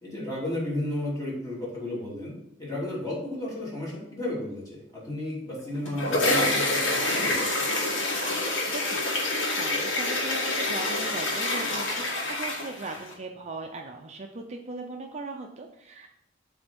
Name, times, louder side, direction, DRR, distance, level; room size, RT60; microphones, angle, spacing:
voice 1, 0.0-7.6, left 1 dB, 20° left, -6 dB, 3.0 m, -33 dB
sound 1, 5.6-13.1, left 2 dB, 90° left, 1.9 m, -27 dB
voice 2, 8.4-16.2, right 2 dB, 35° right, 3 dB, 0.6 m, -39 dB
7.7 x 3.5 x 5.3 m, 0.77 s
head